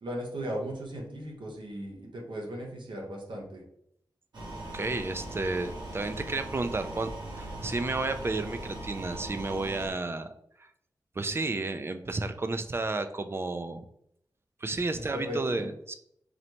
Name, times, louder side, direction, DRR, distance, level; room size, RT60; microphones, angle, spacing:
voice 1, 0.0-3.6 14.9-15.7, equal, 85° right, 0 dB, 1.1 m, -37 dB
sound 1, 4.3-9.9, right 2 dB, 60° right, 1.4 m, -40 dB
voice 2, 4.7-10.3 10.6-10.7 11.2-13.8 14.6-15.9, right 3 dB, 30° right, 9 dB, 0.4 m, -32 dB
4.0 x 3.2 x 2.9 m, 0.72 s
wide cardioid pair, 95°, 8 cm